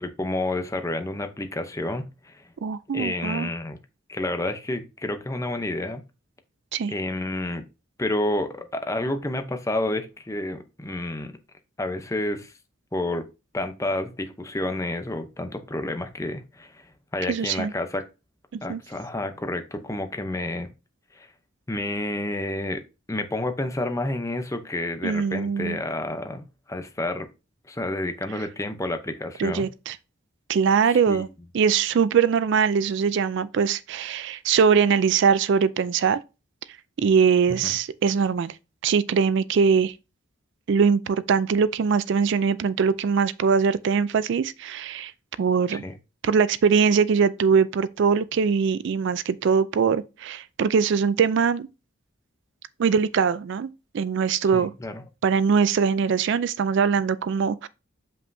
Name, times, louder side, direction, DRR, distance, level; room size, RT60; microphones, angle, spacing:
voice 1, 0.0-2.4 2.9-3.8 4.1-6.0 6.9-7.6 8.0-11.3 11.8-12.5 12.9-13.3 13.5-18.0 18.6-20.7 21.1-21.3 21.7-22.8 23.1-27.3 27.7-29.7 30.9-31.2 37.5-37.7 45.7-45.9 54.5-55.0, left 1 dB, 15° left, 0.7 m, -30 dB
voice 2, 2.6-3.5 6.7-6.9 17.3-17.7 18.5-18.8 25.0-25.8 29.4-30.0 30.5-31.3 31.5-36.2 37.0-38.5 38.8-39.9 40.7-45.1 45.4-45.8 46.2-51.7 52.8-53.7 53.9-54.7 55.2-57.7, right 6 dB, 60° right, 0.3 m, -22 dB
7.4 x 5.4 x 2.6 m
head